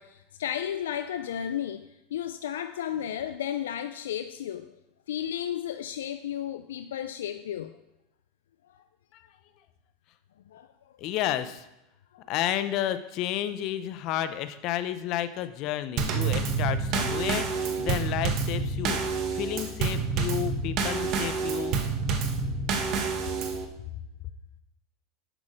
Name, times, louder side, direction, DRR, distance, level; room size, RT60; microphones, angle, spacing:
voice 1, 0.0-4.8 5.1-7.8 8.7-8.8 10.5-10.9 12.1-12.2, left 10 dB, 80° left, 9 dB, 0.4 m, -33 dB
voice 2, 11.0-11.7 12.3-21.8, left 12 dB, 55° left, 12 dB, 0.8 m, -31 dB
Drum kit / Snare drum / Bass drum, 16.0-23.7, right 5 dB, 50° right, 1.3 m, -28 dB
9.0 x 6.4 x 5.1 m, 0.90 s
hypercardioid pair, 90°, 0 cm